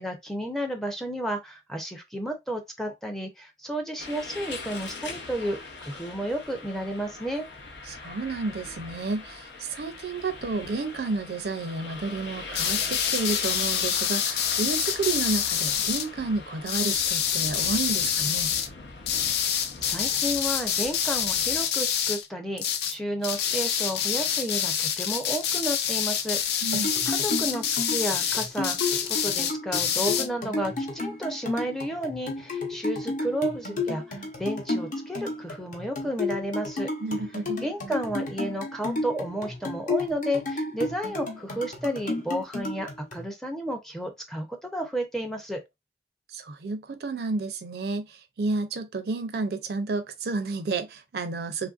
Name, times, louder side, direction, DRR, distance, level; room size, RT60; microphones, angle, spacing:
voice 1, 0.0-7.5 19.4-26.6 27.1-36.9 37.6-45.6, equal, ahead, 0.4 m, -32 dB
sound 1, 4.0-21.6, left 3 dB, 85° left, 0.7 m, -41 dB
voice 2, 7.9-18.5 26.6-26.9 37.0-37.6 46.3-51.7, right 3 dB, 60° right, 0.4 m, -31 dB
sound 2, 12.5-16.1 16.7-18.7 19.1-22.3 22.6-23.0 23.2-30.3, left 8 dB, 65° left, 0.4 m, -27 dB
sound 3, 26.7-43.2, left 2 dB, 45° left, 0.8 m, -32 dB
3.0 x 2.5 x 2.3 m
head